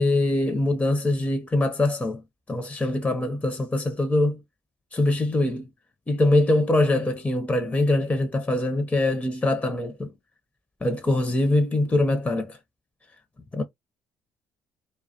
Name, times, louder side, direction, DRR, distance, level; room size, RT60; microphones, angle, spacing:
voice 1, 0.0-2.2 2.5-4.4 4.9-5.7 6.1-10.1 10.8-12.6 13.5-13.6, left 2 dB, 20° left, 0.6 m, -23 dB
2.3 x 2.1 x 2.7 m
hypercardioid pair, 50°, 8 cm